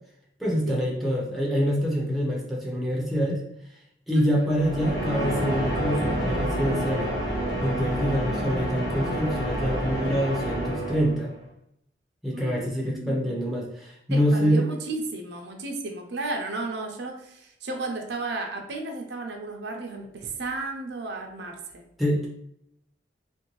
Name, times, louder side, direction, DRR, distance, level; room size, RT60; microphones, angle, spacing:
voice 1, 0.4-3.4 4.1-7.1 7.6-11.3 12.2-14.7 22.0-22.3, equal, ahead, -3 dB, 0.6 m, -25 dB
voice 2, 4.1-4.5 12.3-13.4 14.1-21.8, right 2 dB, 70° right, 2 dB, 0.6 m, -34 dB
sound 1, 4.5-11.4, right 1 dB, 80° left, 1.3 m, -29 dB
3.1 x 2.6 x 3.0 m, 0.75 s
head